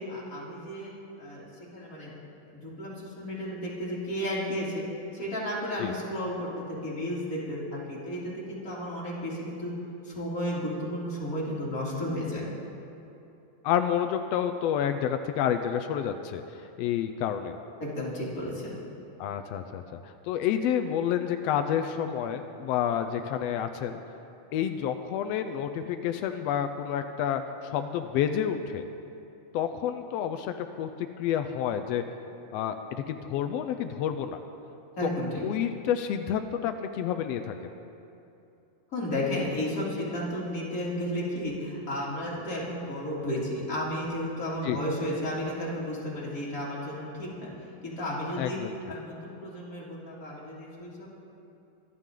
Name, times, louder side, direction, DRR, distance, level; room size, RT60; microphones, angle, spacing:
voice 1, 0.1-2.1 2.5-4.8 5.1-9.7 10.0-12.5 17.8-18.7 35.0-35.4 38.9-47.5 47.8-48.6 48.9-51.1, left 1 dB, 25° left, -7 dB, 3.2 m, -33 dB
voice 2, 13.6-16.4 16.8-17.6 19.2-24.0 24.5-28.8 29.5-30.9 31.2-32.0 32.5-34.4 35.0-35.1 35.4-37.7 44.6-44.8 48.4-48.7, left 9 dB, 90° left, 8 dB, 1.4 m, -29 dB
25.5 x 11.0 x 3.8 m, 2.8 s
omnidirectional pair, 3.6 m